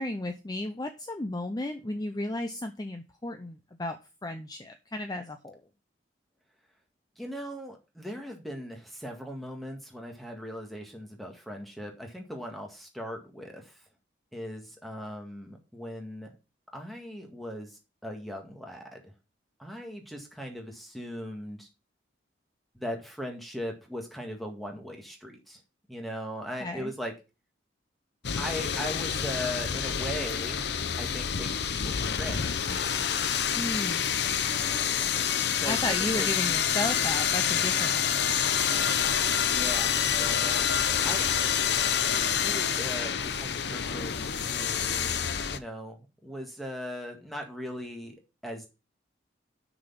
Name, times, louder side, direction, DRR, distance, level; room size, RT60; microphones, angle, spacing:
voice 1, 0.0-5.6 26.6-26.9 33.5-34.1 35.6-38.7, left 1 dB, 20° left, 7 dB, 0.6 m, -34 dB
voice 2, 7.2-13.7 14.3-16.3 16.7-19.1 19.6-21.7 22.7-25.6 25.9-27.1 28.4-30.7 31.0-32.5 35.6-36.3 39.5-40.7 41.0-41.3 42.3-48.2 48.4-48.7, equal, ahead, 2 dB, 1.9 m, -39 dB
sound 1, 28.2-45.6, left 8 dB, 60° left, 0.7 m, -27 dB
6.4 x 6.2 x 5.7 m, 0.29 s
head